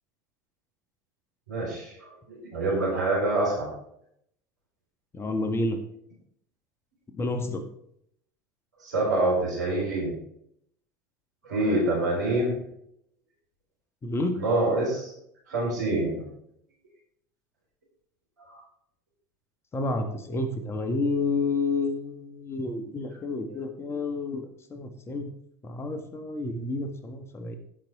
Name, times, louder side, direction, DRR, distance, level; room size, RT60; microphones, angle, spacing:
voice 1, 1.5-3.7 8.8-10.1 11.5-12.6 14.3-15.1 15.5-16.3 18.4-18.6 22.8-22.9 23.5-23.6, right 2 dB, 85° right, -4 dB, 4.6 m, -26 dB
voice 2, 5.1-5.8 7.1-7.6 14.0-14.3 19.7-25.3 25.6-27.6, left 2 dB, 30° left, 6 dB, 1.7 m, -30 dB
14.0 x 6.2 x 3.7 m, 0.71 s
hypercardioid pair, 75°, 9 cm